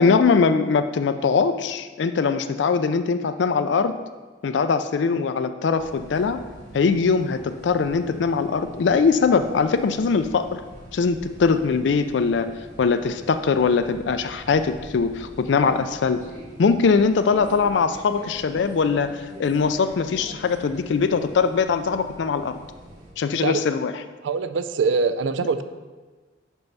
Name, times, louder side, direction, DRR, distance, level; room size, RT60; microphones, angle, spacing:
voice 1, 0.0-3.9 4.4-6.4 6.7-10.6 10.9-12.5 12.8-16.2 16.6-22.6 23.2-23.9, left 5 dB, 70° left, 10 dB, 0.4 m, -21 dB
sound 1, 5.8-23.1, equal, 40° right, 1.8 m, -44 dB
voice 2, 24.2-25.6, right 4 dB, 80° right, 11 dB, 0.4 m, -23 dB
5.4 x 5.3 x 5.9 m, 1.3 s
head